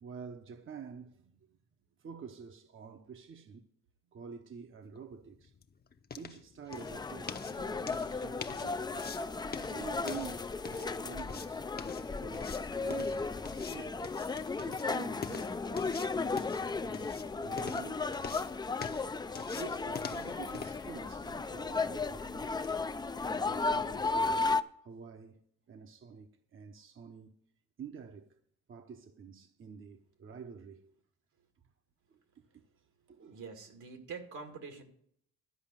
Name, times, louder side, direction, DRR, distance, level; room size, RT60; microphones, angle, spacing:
voice 1, 0.0-1.6 2.0-3.7 4.1-5.5 6.1-8.9 9.6-11.7 12.2-14.0 14.5-18.2 19.5-22.8 23.3-24.5 24.8-25.4 25.7-27.4 27.8-28.4 28.7-30.9 32.1-32.6 33.1-33.4, right 6 dB, 40° right, 0.9 m, -48 dB
sound 1, 5.0-22.8, left 5 dB, 30° left, 0.8 m, -47 dB
sound 2, 6.7-24.6, left 4 dB, 15° left, 0.4 m, -35 dB
voice 2, 33.3-34.8, right 5 dB, 80° right, 2.1 m, -46 dB
12.5 x 5.1 x 8.8 m
cardioid pair, 90°, 30 cm